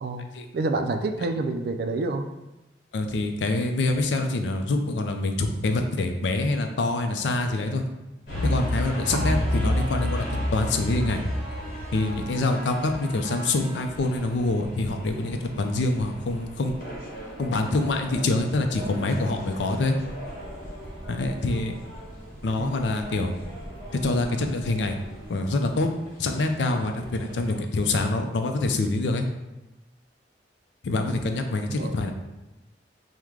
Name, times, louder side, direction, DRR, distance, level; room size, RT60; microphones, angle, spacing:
voice 1, 0.5-2.2 9.1-9.5 22.6-22.7 31.7-31.9, right 3 dB, 60° right, 6 dB, 0.3 m, -28 dB
voice 2, 2.9-7.8 8.4-10.3 10.5-11.2 11.9-16.7 17.4-20.0 21.1-21.8 22.4-23.3 24.0-25.0 25.3-25.9 26.2-29.3 30.8-32.1, left 2 dB, 85° left, 5 dB, 0.4 m, -25 dB
sound 1, 8.3-27.6, left 1 dB, 55° left, 1.2 m, -34 dB
sound 2, 8.3-14.3, right 1 dB, 5° left, 0.5 m, -42 dB
sound 3, 14.8-25.3, equal, 25° right, 1.0 m, -44 dB
4.6 x 2.1 x 3.6 m, 1.0 s
head